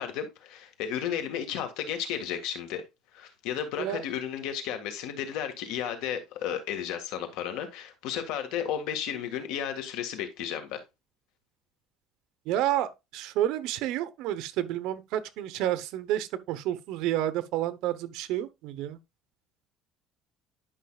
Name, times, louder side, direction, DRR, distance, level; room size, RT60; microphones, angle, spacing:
voice 1, 0.0-2.8 3.1-10.8, left 9 dB, 80° left, 1.7 m, -33 dB
voice 2, 12.5-19.0, right 12 dB, 75° right, 0.9 m, -30 dB
11.0 x 5.6 x 2.3 m
cardioid pair, 135°, 0 cm